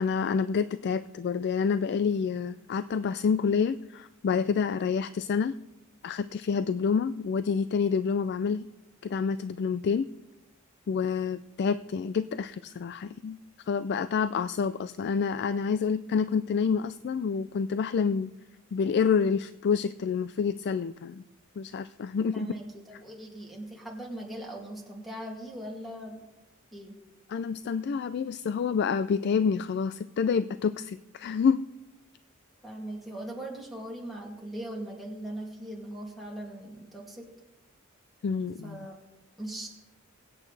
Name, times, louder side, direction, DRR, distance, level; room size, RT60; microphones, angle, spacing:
voice 1, 0.0-5.5 6.0-8.7 9.0-10.1 10.9-13.4 13.7-18.3 18.7-21.2 21.6-22.5 27.3-31.7 38.2-38.9, left 6 dB, 50° left, 13 dB, 0.3 m, -28 dB
voice 2, 22.3-26.2 26.7-27.0 32.6-37.3 38.6-38.9 39.4-39.7, right 1 dB, ahead, -4 dB, 2.5 m, -40 dB
23.0 x 8.6 x 3.3 m, 1.0 s
head